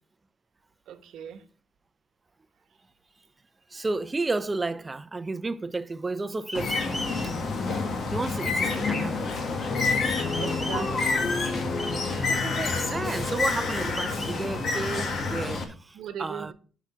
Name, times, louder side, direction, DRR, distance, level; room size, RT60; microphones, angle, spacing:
voice 1, 0.9-1.4 10.4-11.3 15.9-16.5, right 9 dB, 80° right, 1.1 m, -38 dB
voice 2, 3.7-6.9 7.2-7.4 7.7-7.8 8.1-9.3 12.2-16.5, right 3 dB, 25° right, 0.6 m, -32 dB
Bird, 6.5-15.6, left 3 dB, 55° left, 1.6 m, -28 dB
sound 1, 6.5-7.3 10.0-11.3 11.8-13.3 13.7-15.3, left 1 dB, 30° left, 3.9 m, -39 dB
sound 2, 9.6-13.4, left 3 dB, 80° left, 4.8 m, -34 dB
6.6 x 6.1 x 5.9 m
cardioid pair, 90°, 0 cm